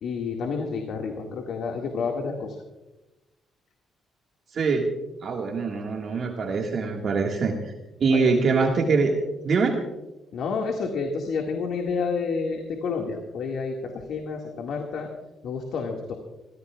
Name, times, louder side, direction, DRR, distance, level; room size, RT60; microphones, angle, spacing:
voice 1, 0.0-2.6 8.1-8.4 10.3-15.1 15.4-16.2, left 5 dB, 75° left, 1 dB, 1.9 m, -29 dB
voice 2, 4.5-4.8 5.2-7.7 8.0-9.1 9.4-9.8, right 4 dB, 55° right, 1 dB, 1.8 m, -23 dB
25.5 x 15.5 x 2.4 m, 1.0 s
cardioid pair, 90°, 0 cm